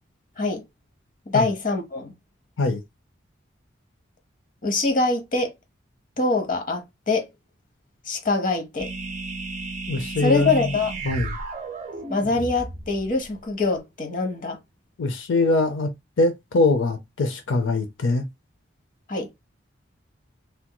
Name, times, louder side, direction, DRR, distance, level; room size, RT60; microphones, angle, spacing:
voice 1, 1.3-2.1 4.6-5.5 6.2-7.3 8.1-8.9 10.2-10.9 12.1-14.6 19.1-19.3, left 3 dB, 45° left, 0.8 m, -24 dB
sound 1, 8.8-13.4, right 3 dB, 35° right, 0.5 m, -34 dB
voice 2, 9.9-10.7 11.0-11.3 15.0-15.9 16.2-18.3, left 2 dB, 80° left, 0.5 m, -22 dB
3.3 x 3.0 x 2.2 m
head